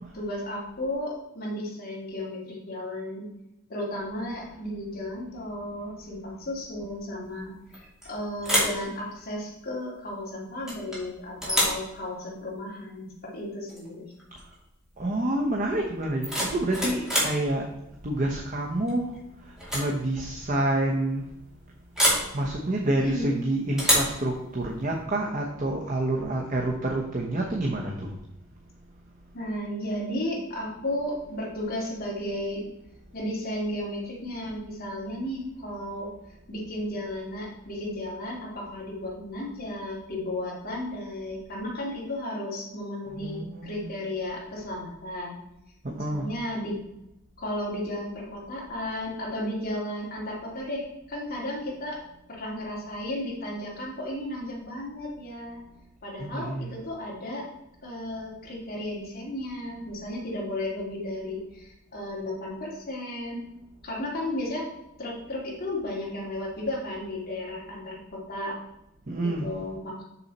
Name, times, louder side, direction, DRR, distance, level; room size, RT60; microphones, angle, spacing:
voice 1, 0.1-3.3 3.7-14.1 22.9-23.4 29.3-32.7 33.1-36.1 36.5-45.4 45.9-46.8 47.4-52.0 52.3-55.6 56.0-57.5 57.8-63.5 63.8-64.7 65.0-68.6 69.2-69.9, left 1 dB, 45° left, -4 dB, 2.8 m, -34 dB
sound 1, 7.7-8.1 8.4-8.8 10.7-11.0 11.4-11.8 13.7-13.9 14.2-14.5 16.0-17.4 18.9-19.2 19.6-19.9 20.2-20.3 22.0-22.3 23.8-24.2, equal, 5° right, 2.6 m, -26 dB
voice 2, 15.0-17.7 18.0-19.1 19.7-21.2 22.3-28.1 43.1-43.9 45.8-46.3 56.2-56.7 69.1-69.5, right 1 dB, 40° right, 0 dB, 1.0 m, -28 dB
6.9 x 6.6 x 4.2 m, 0.87 s
head